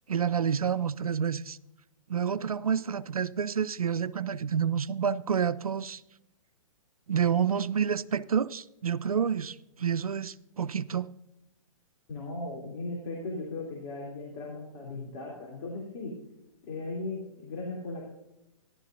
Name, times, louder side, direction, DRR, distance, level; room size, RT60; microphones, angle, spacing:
voice 1, 0.1-1.6 2.1-6.0 7.1-11.1, right 7 dB, 85° right, 0.5 m, -29 dB
voice 2, 12.1-16.2 16.6-18.0, left 2 dB, 40° left, 2.9 m, -37 dB
13.0 x 11.5 x 2.5 m
figure-of-eight pair, 125°, 18 cm